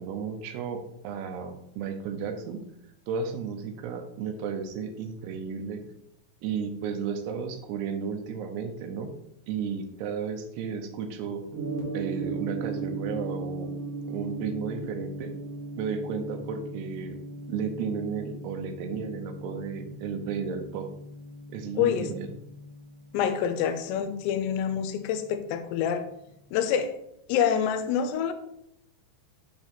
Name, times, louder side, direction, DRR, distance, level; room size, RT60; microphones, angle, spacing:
voice 1, 0.0-2.6 3.1-5.8 6.4-9.1 9.5-11.4 11.9-13.7 14.1-15.3 15.8-17.2 17.5-20.9 21.5-22.3, right 6 dB, 85° right, 5 dB, 2.8 m, -33 dB
Gong, 11.5-25.7, right 2 dB, 65° right, 3.1 m, -38 dB
voice 2, 21.8-22.1 23.1-26.1 26.5-27.0 27.3-28.3, left 8 dB, 85° left, 9 dB, 2.7 m, -26 dB
7.3 x 2.9 x 5.7 m, 0.79 s
omnidirectional pair, 4.8 m